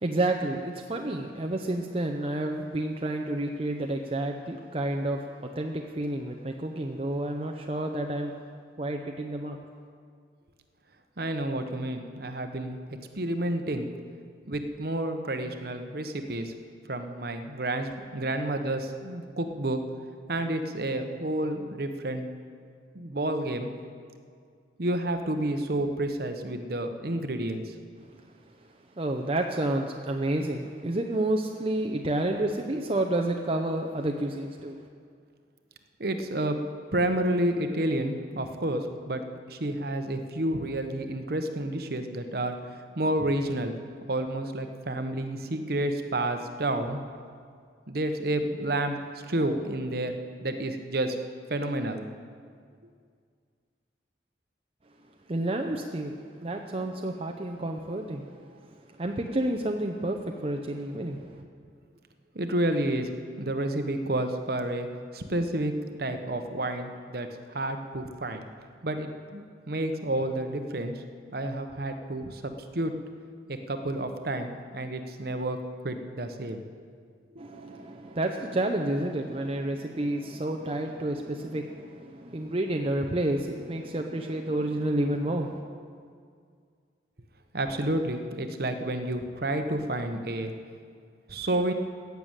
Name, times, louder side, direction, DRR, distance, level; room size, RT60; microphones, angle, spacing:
voice 1, 0.0-8.3 8.8-9.6 29.0-34.8 55.3-56.2 56.4-58.2 59.0-61.4 77.4-85.6, right 1 dB, 30° right, 3 dB, 0.6 m, -30 dB
voice 2, 11.2-12.8 13.1-13.9 14.5-16.5 16.9-19.8 20.3-22.3 22.9-23.7 24.8-27.6 36.0-36.6 36.9-39.2 39.5-42.6 43.0-43.7 44.1-47.0 47.9-49.0 49.3-51.2 51.5-52.0 62.3-63.1 63.4-64.9 65.1-65.7 66.0-67.3 67.5-68.5 68.8-70.9 71.3-72.9 73.5-75.6 75.8-76.6 87.5-90.5 91.3-91.7, right 1 dB, 55° right, 7 dB, 0.9 m, -30 dB
15.5 x 6.9 x 8.8 m, 2.1 s
head